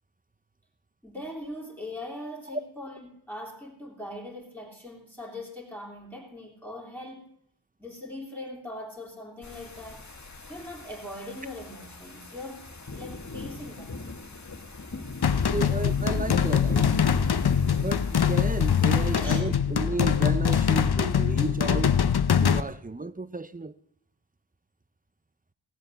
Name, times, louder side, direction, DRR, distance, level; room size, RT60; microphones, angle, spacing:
voice 1, 1.0-7.2 7.8-10.1 10.5-12.7 12.9-14.0 19.1-19.5, left 1 dB, 5° left, 3.0 m, -40 dB
sound 1, 9.4-19.4, left 3 dB, 40° left, 1.6 m, -37 dB
sound 2, 15.2-22.6, left 8 dB, 55° left, 0.8 m, -23 dB
voice 2, 15.3-17.2 17.8-22.0 22.4-23.8, right 3 dB, 20° right, 0.6 m, -33 dB
17.0 x 7.5 x 7.9 m
wide cardioid pair, 55°, 45 cm